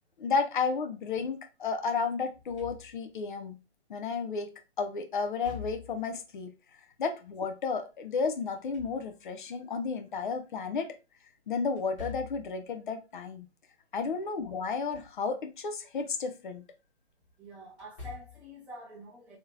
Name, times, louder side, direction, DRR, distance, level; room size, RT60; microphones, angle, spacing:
voice 1, 0.2-3.6 3.9-6.5 7.0-10.9 11.5-13.5 13.9-16.6, left 5 dB, 45° left, 0.8 m, -32 dB
Slam / Thump thud, 2.3-3.2 5.2-6.1 8.4-9.4 11.8-12.6 14.6-15.2 15.6-15.7 17.7-18.5, left 7 dB, 25° left, 1.7 m, -46 dB
voice 2, 17.4-19.4, right 1 dB, 5° right, 0.8 m, -47 dB
4.0 x 3.1 x 2.7 m
figure-of-eight pair, 145°, 34 cm